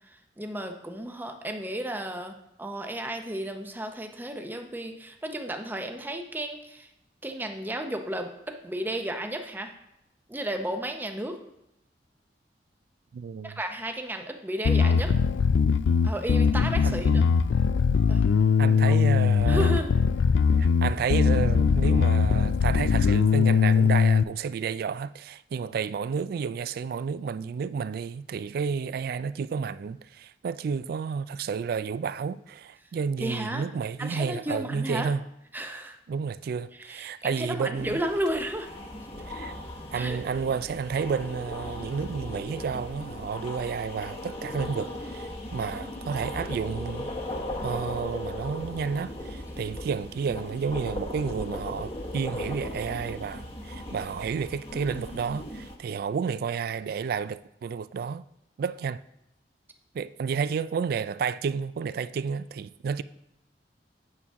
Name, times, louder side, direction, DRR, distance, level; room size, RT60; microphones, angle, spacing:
voice 1, 0.0-6.9 7.2-9.7 10.3-11.4 13.4-15.1 16.0-17.2 18.1-18.3 18.9-19.0 19.5-19.9 33.2-33.6 34.0-35.1 35.5-36.0 36.7-38.7 39.9-40.2, right 1 dB, 10° right, 0.7 m, -33 dB
voice 2, 13.1-13.6 15.1-15.2 16.8-17.3 18.6-19.7 20.6-35.2 36.1-38.0 39.3-39.5 39.9-47.1 47.6-58.2 58.6-59.0 59.9-63.0, right 6 dB, 60° right, 0.3 m, -31 dB
Bass guitar, 14.7-24.2, left 6 dB, 90° left, 0.3 m, -21 dB
sound 1, 37.8-55.8, left 1 dB, 35° left, 1.0 m, -37 dB
8.6 x 7.0 x 3.6 m
head